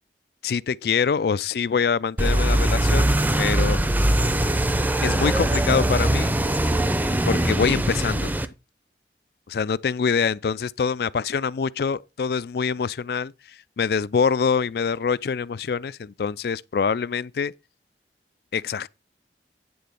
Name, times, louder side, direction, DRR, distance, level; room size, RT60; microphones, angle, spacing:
voice 1, 0.4-3.1 3.4-3.8 5.0-6.3 7.3-8.3 9.5-17.5 18.5-18.9, left 6 dB, 60° left, 0.4 m, -25 dB
sound 1, 2.2-8.5, right 1 dB, 10° right, 0.6 m, -21 dB
9.5 x 3.8 x 6.8 m
head